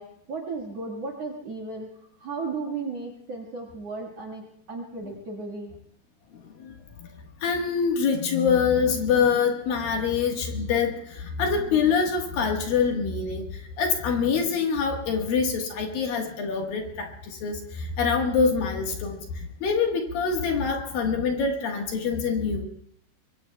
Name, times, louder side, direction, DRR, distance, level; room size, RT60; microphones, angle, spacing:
voice 1, 0.0-1.9 2.2-4.4 4.7-5.7, right 3 dB, 50° right, 1 dB, 2.2 m, -35 dB
voice 2, 7.4-22.6, left 5 dB, 65° left, 2 dB, 2.9 m, -25 dB
24.0 x 23.0 x 2.3 m, 0.70 s
omnidirectional pair, 4.9 m